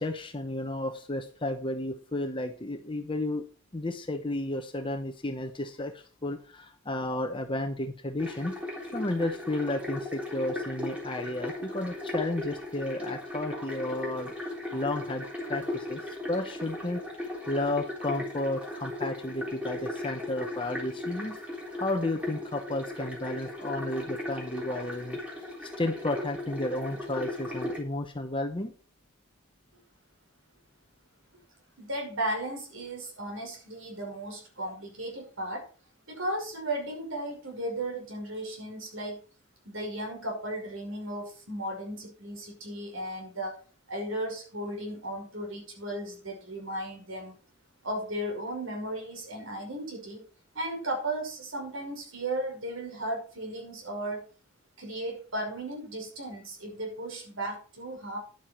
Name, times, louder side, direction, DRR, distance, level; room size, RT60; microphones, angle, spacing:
voice 1, 0.0-3.4 3.7-8.5 8.9-21.4 21.8-28.7, left 1 dB, 25° left, 6 dB, 0.9 m, -33 dB
sound 1, 8.2-27.8, left 1 dB, 5° right, 3.8 m, -37 dB
voice 2, 31.8-35.7 36.1-39.2 39.7-43.6 43.9-47.3 47.8-50.2 50.5-54.2 54.8-58.2, right 1 dB, 75° right, 2 dB, 5.7 m, -35 dB
11.0 x 9.0 x 4.5 m, 0.39 s
head